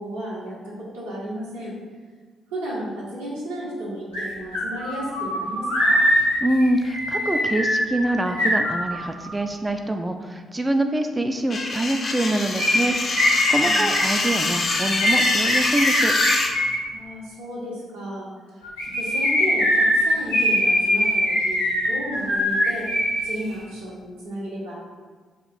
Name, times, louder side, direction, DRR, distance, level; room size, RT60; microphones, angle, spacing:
voice 1, 0.0-1.7 2.5-6.0 13.6-13.9 16.9-18.6 18.9-24.8, right 1 dB, 80° right, -8 dB, 1.1 m, -33 dB
sound 1, 4.1-4.2 4.5-9.3 12.6-16.8 18.6-23.3 23.5-23.6, equal, 90° left, 1.0 m, -22 dB
voice 2, 6.4-16.1, right 1 dB, 20° right, 5 dB, 0.3 m, -25 dB
sound 2, 11.5-16.5, left 3 dB, 45° left, 0.6 m, -25 dB
4.9 x 2.5 x 4.0 m, 1.5 s
figure-of-eight pair, 40°, 0 cm